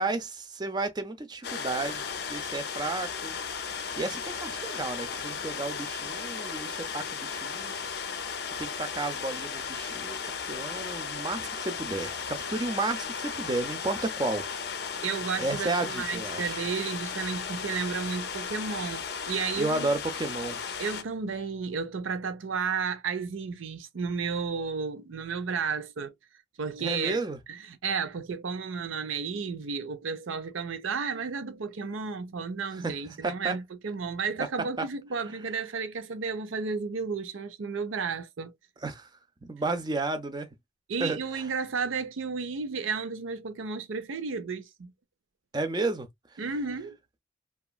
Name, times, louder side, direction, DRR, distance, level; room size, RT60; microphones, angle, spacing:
voice 1, 0.0-2.0 2.3-3.4 4.0-7.7 8.6-10.2 10.5-14.5 15.4-16.6 19.6-20.6 26.8-27.4 32.7-32.9 33.2-33.5 34.8-34.9 38.8-39.1 39.4-40.5 41.0-41.2 45.5-46.1, right 2 dB, 20° right, 0.4 m, -32 dB
sound 1, 1.4-21.0, left 6 dB, 55° left, 0.5 m, -35 dB
voice 2, 15.0-19.9 20.8-26.1 26.6-27.2 27.5-38.5 40.9-44.9 46.4-47.0, right 5 dB, 85° right, 0.5 m, -33 dB
2.9 x 2.3 x 2.2 m
head